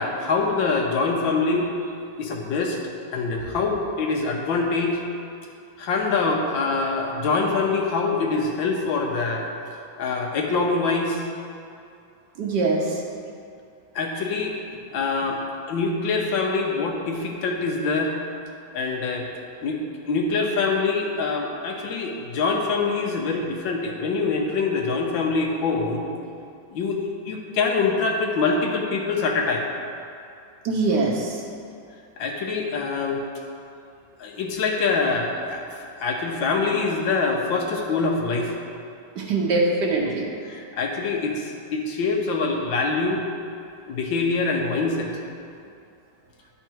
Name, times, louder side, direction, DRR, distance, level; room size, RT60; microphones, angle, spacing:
voice 1, 0.0-1.7 2.2-2.8 3.1-5.0 5.8-9.5 10.0-11.2 13.9-15.4 15.7-18.1 18.7-19.3 19.6-19.8 20.1-26.1 26.7-29.7 32.2-33.2 34.2-38.5 40.0-40.1 40.4-43.2 43.9-45.1, left 4 dB, 85° left, 1 dB, 1.7 m, -24 dB
voice 2, 12.4-12.9 30.6-31.4 39.1-40.3, right 3 dB, 65° right, -1 dB, 1.6 m, -22 dB
11.5 x 4.4 x 4.6 m, 2.5 s
omnidirectional pair, 2.1 m